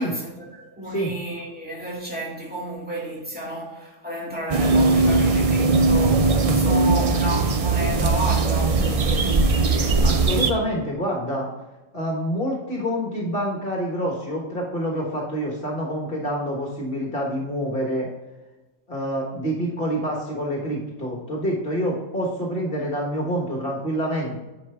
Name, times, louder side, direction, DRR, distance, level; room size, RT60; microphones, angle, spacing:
voice 1, 0.0-9.2, right 1 dB, 5° right, 2.2 m, -32 dB
sound 1, 4.5-10.5, right 3 dB, 45° right, 0.5 m, -19 dB
sound 2, 4.9-6.4, left 3 dB, 75° left, 1.4 m, -39 dB
voice 2, 10.0-11.5 11.9-18.1 18.9-24.4, equal, 45° left, 1.5 m, -27 dB
10.0 x 5.0 x 3.4 m
omnidirectional pair, 1.3 m